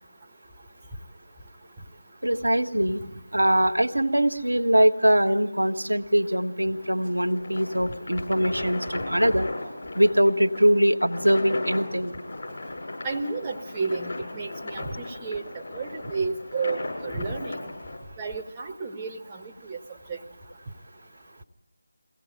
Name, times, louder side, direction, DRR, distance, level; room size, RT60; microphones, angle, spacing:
voice 1, 2.2-3.0 3.3-9.5 9.9-12.1, equal, 85° right, 4 dB, 1.6 m, -22 dB
sound 1, 6.7-18.0, left 2 dB, 50° left, 7.2 m, -36 dB
voice 2, 13.0-17.7 18.2-19.8 20.1-20.2, right 4 dB, 20° right, 0 dB, 1.3 m, -32 dB
24.0 x 17.0 x 9.1 m, 0.97 s
figure-of-eight pair, 160°, 0 cm